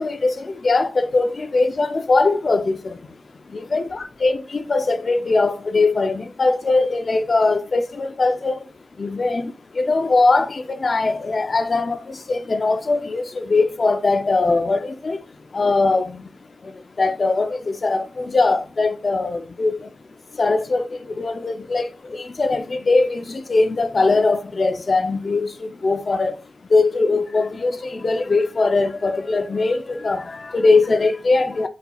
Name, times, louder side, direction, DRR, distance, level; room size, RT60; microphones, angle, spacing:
voice 1, 0.0-8.6 9.0-16.3 16.6-19.9 20.3-26.4 26.7-31.7, left 3 dB, 55° left, 0.5 m, -21 dB
4.1 x 4.1 x 2.3 m
wide cardioid pair, 75°, 0 cm